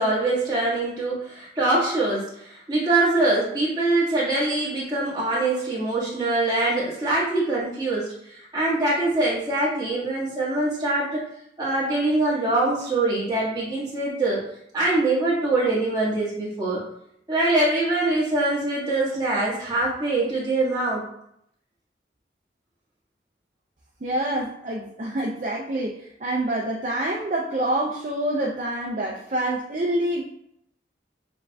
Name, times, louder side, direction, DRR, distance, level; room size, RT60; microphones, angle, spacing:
voice 1, 0.0-11.2 11.6-14.4 14.7-16.8 17.3-21.0, right 2 dB, 25° right, -8 dB, 1.5 m, -23 dB
voice 2, 24.0-30.2, right 1 dB, 40° right, -2 dB, 0.4 m, -26 dB
6.9 x 2.5 x 2.3 m, 0.75 s
head